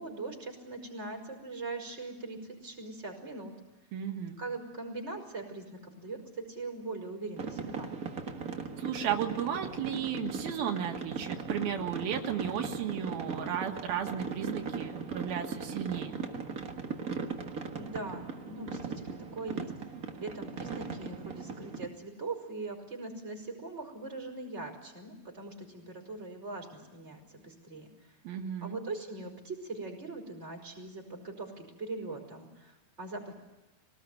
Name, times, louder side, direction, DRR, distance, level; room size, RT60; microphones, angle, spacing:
voice 1, 0.0-3.5 4.4-7.9 17.7-28.2 28.6-33.3, right 3 dB, 15° right, 2 dB, 5.1 m, -41 dB
voice 2, 3.9-4.4 8.8-16.2 28.3-28.8, right 8 dB, 85° right, 3 dB, 3.5 m, -34 dB
sound 1, 7.4-21.9, right 5 dB, 50° right, 1.0 m, -38 dB
23.5 x 19.0 x 9.1 m, 1.0 s
omnidirectional pair, 4.2 m